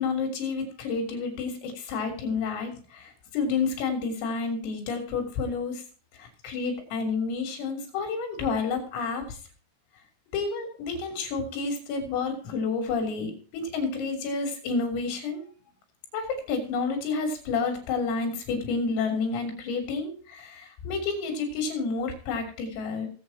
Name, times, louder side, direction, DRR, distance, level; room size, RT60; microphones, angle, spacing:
voice 1, 0.0-5.8 6.2-9.4 10.3-15.4 16.1-23.1, left 4 dB, 80° left, 3 dB, 6.0 m, -30 dB
24.0 x 8.1 x 3.0 m, 0.39 s
omnidirectional pair, 5.9 m